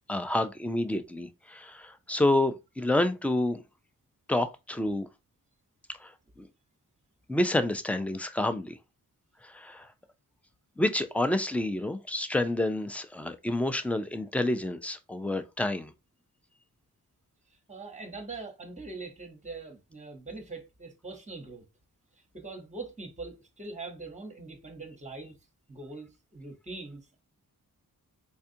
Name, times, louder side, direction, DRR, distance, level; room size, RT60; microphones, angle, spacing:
voice 1, 0.1-3.6 4.3-5.1 6.0-6.1 6.4-6.5 7.3-8.8 9.4-9.9 10.8-15.9, left 1 dB, 5° left, 0.4 m, -28 dB
voice 2, 17.7-21.6 22.3-25.3 25.7-27.0, right 3 dB, 20° right, 1.0 m, -42 dB
4.3 x 2.3 x 2.7 m
wide cardioid pair, 85°, 36 cm